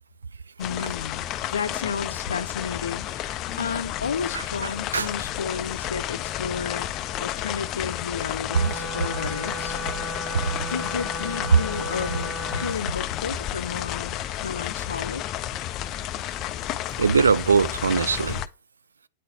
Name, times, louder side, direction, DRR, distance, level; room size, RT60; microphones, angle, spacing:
voice 1, 0.6-6.9 7.2-10.0 10.6-15.2, left 6 dB, 75° left, 0.6 m, -32 dB
sound 1, 0.6-18.5, left 12 dB, 35° left, 0.4 m, -32 dB
voice 2, 4.3-5.1 10.3-10.4 17.0-18.4, right 5 dB, 80° right, 0.4 m, -22 dB
Wind instrument woodwind instrument, 8.4-12.8, equal, 5° right, 1.6 m, -35 dB
9.1 x 3.9 x 2.8 m
figure-of-eight pair, 105°, 0 cm